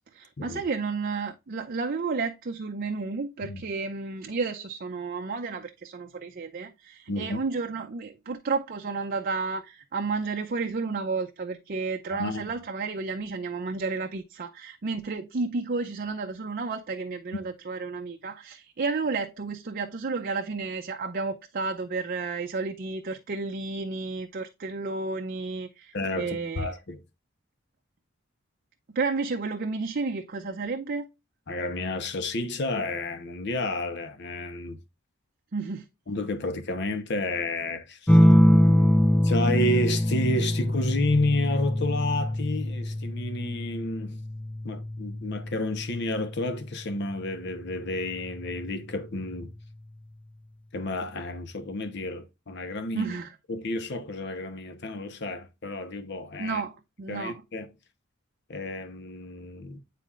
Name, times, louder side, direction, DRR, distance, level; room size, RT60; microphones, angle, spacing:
voice 1, 0.1-26.7 28.9-31.1 35.5-35.8 52.9-53.3 56.4-57.4, right 4 dB, 45° right, 0.5 m, -32 dB
voice 2, 7.1-7.4 12.1-12.4 25.9-27.0 31.5-34.8 36.1-38.2 39.2-44.2 44.6-49.5 50.7-53.2 53.5-56.6 57.1-57.7 58.5-59.8, left 2 dB, 60° left, 0.9 m, -30 dB
sound 1, 38.1-47.2 48.6-49.2, equal, 5° left, 0.4 m, -24 dB
9.2 x 4.2 x 2.4 m
head